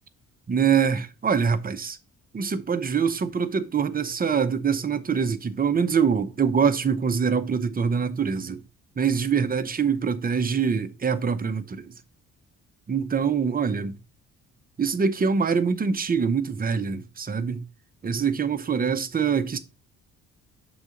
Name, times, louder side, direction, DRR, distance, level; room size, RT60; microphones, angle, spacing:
voice 1, 0.5-2.0 2.3-8.6 9.0-11.9 12.9-14.0 14.8-17.6 18.0-19.6, right 6 dB, 30° right, 0.8 m, -24 dB
6.1 x 4.0 x 5.1 m
cardioid pair, 90°, 30 cm